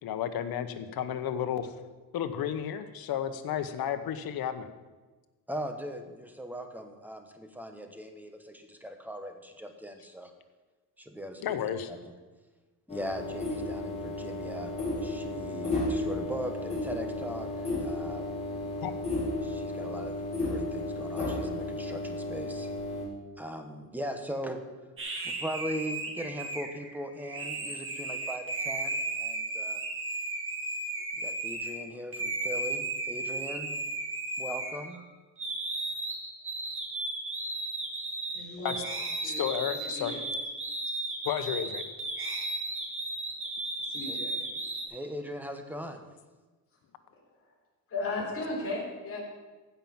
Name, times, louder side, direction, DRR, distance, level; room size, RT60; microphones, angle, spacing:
voice 1, 0.0-1.7 2.1-4.7 11.4-11.9 18.8-18.9 38.6-38.7 39.2-40.1 41.2-41.8, left 9 dB, 80° left, 10 dB, 1.1 m, -32 dB
voice 2, 5.5-10.3 11.0-11.6 11.9-12.1 12.9-14.7 15.0-17.5 17.8-18.4 19.4-20.1 20.4-22.7 23.4-24.6 25.2-29.8 31.2-33.7 34.4-35.0 44.1-44.2 44.9-46.1, equal, 5° right, 6 dB, 1.2 m, -39 dB
sound 1, 12.9-23.0, left 2 dB, 15° left, 4.7 m, -33 dB
sound 2, 25.0-31.8 32.1-35.0 35.4-44.8, right 2 dB, 35° right, 2.3 m, -35 dB
voice 3, 38.3-38.8 39.2-39.4 40.0-40.2 40.8-40.9 43.8-44.4 47.1-47.2 47.9-49.2, left 2 dB, 40° left, -3 dB, 4.0 m, -35 dB
15.5 x 5.8 x 7.3 m, 1.3 s
cardioid pair, 140°, 36 cm